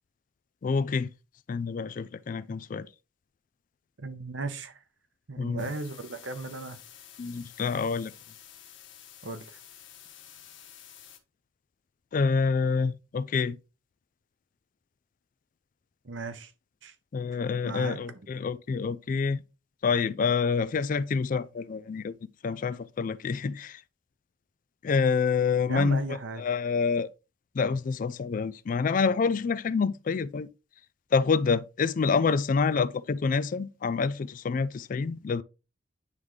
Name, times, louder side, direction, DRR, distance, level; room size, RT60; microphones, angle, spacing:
voice 1, 0.6-1.1 1.5-2.9 5.4-5.6 7.2-8.1 12.1-13.6 17.1-19.4 19.8-22.1 22.4-23.8 24.8-27.1 27.5-30.5 31.1-35.4, left 5 dB, 45° left, 0.3 m, -27 dB
voice 2, 4.0-4.8 5.3-6.8 9.2-9.6 16.0-16.5 16.8-16.9 17.6-18.3 25.7-26.4, right 3 dB, 65° right, 0.9 m, -36 dB
sound 1, 5.6-11.2, left 10 dB, 70° left, 1.3 m, -50 dB
9.7 x 3.6 x 3.2 m
head